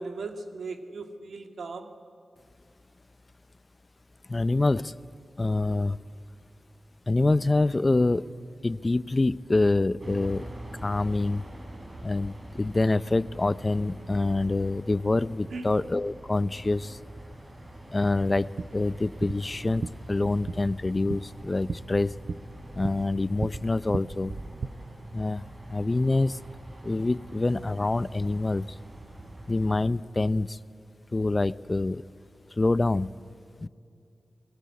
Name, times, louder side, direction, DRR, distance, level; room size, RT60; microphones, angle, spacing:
voice 1, 0.0-1.9 15.5-15.9, right 3 dB, 90° right, 6 dB, 1.9 m, -38 dB
voice 2, 4.3-4.9 5.4-6.0 7.1-8.3 8.6-10.4 10.8-11.4 12.0-17.0 17.9-22.2 22.7-24.4 25.1-25.4 25.7-26.4 26.8-28.7 29.5-30.6 31.1-32.0 32.5-33.1 33.6-33.7, left 2 dB, 35° left, 18 dB, 0.5 m, -26 dB
sound 1, 10.0-29.8, right 1 dB, 40° right, 5.5 m, -44 dB
sound 2, 18.3-24.7, right 4 dB, 70° right, 0.8 m, -38 dB
25.5 x 22.0 x 9.5 m, 2.4 s
cardioid pair, 60°, 0 cm